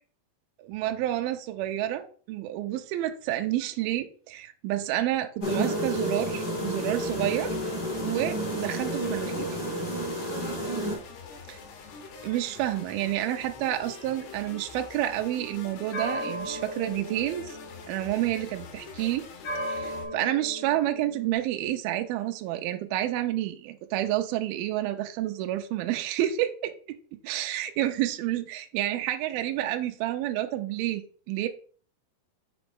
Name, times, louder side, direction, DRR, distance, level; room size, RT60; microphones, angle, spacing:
voice 1, 0.6-7.5 8.0-9.5 11.5-11.6 12.2-17.6 17.9-19.3 19.7-26.7 27.2-31.5, right 13 dB, 85° right, 6 dB, 2.2 m, -29 dB
sound 1, 5.4-11.0, equal, 25° left, 3.5 m, -30 dB
sound 2, 6.3-20.0, left 4 dB, 85° left, 3.7 m, -45 dB
sound 3, 13.7-14.9 15.9-18.4 19.4-21.3, equal, 60° left, 4.7 m, -37 dB
7.9 x 5.1 x 3.4 m, 0.43 s
omnidirectional pair, 4.9 m